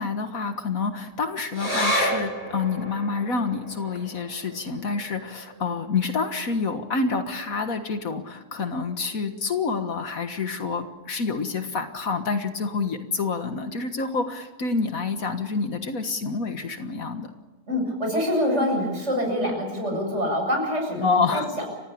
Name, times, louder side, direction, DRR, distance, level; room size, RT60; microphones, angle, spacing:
voice 1, 0.0-17.3 21.0-21.5, left 4 dB, 65° left, 7 dB, 2.0 m, -28 dB
sound 1, 1.5-8.3 8.6-8.7 9.1-9.7 10.3-10.4, equal, 30° left, 6.3 m, -33 dB
voice 2, 17.7-21.7, equal, 50° right, 1 dB, 8.1 m, -25 dB
30.0 x 16.0 x 8.7 m, 1.2 s
omnidirectional pair, 1.6 m